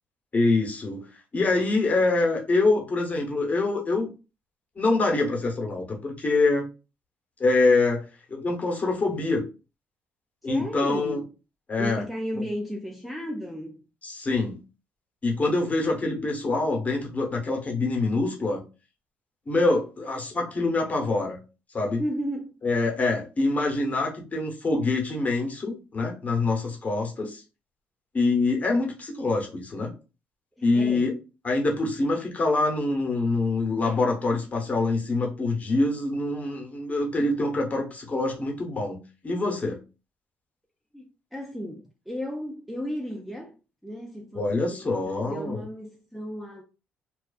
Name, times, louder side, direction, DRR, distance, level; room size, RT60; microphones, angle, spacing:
voice 1, 0.3-1.1 1.3-4.1 4.8-6.7 7.4-9.4 10.4-11.2 11.7-12.0 14.0-14.6 15.2-18.6 19.5-21.4 21.7-22.0 22.6-27.4 28.1-29.9 30.6-31.2 31.4-39.0 39.2-39.8 44.4-45.6, left 3 dB, 30° left, 1.0 m, -25 dB
voice 2, 10.4-11.3 11.8-13.8 22.0-22.5 30.6-31.1 40.9-43.5 43.8-46.6, equal, ahead, 0.5 m, -34 dB
2.3 x 2.3 x 2.4 m
supercardioid pair, 70°, 5 cm